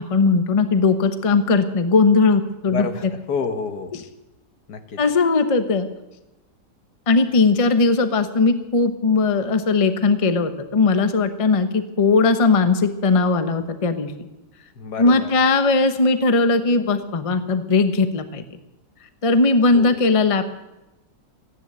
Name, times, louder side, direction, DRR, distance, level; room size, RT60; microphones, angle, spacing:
voice 1, 0.0-2.9 5.0-5.9 7.1-14.1 15.0-18.4 19.2-20.4, left 3 dB, 25° left, 9 dB, 0.8 m, -18 dB
voice 2, 2.6-4.0 4.7-5.0 14.8-15.3 19.7-20.0, left 5 dB, 75° left, 7 dB, 1.8 m, -29 dB
15.0 x 10.0 x 9.0 m, 0.98 s
omnidirectional pair, 1.7 m